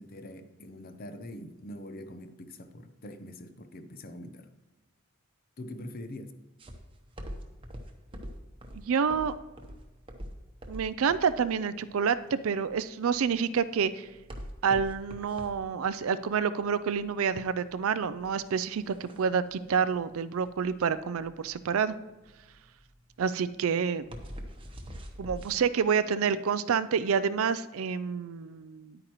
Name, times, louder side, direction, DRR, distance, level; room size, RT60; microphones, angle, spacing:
voice 1, 0.0-4.5 5.6-6.3, left 1 dB, 45° left, 9 dB, 0.7 m, -43 dB
sound 1, 6.6-25.6, equal, 25° right, 0.9 m, -44 dB
voice 2, 8.7-9.3 10.7-14.1 14.6-21.9 23.2-24.1 25.2-29.0, right 6 dB, 80° right, 14 dB, 0.4 m, -28 dB
10.0 x 8.7 x 3.0 m, 1.1 s
head